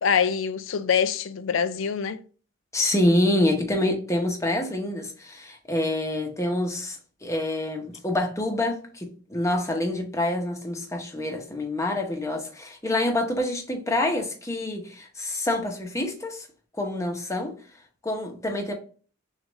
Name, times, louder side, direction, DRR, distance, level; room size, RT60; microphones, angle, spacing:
voice 1, 0.0-2.2, left 7 dB, 70° left, 0.4 m, -24 dB
voice 2, 2.7-16.5 16.8-17.5 18.0-18.7, left 1 dB, 15° left, 0.8 m, -26 dB
6.3 x 2.5 x 3.1 m
head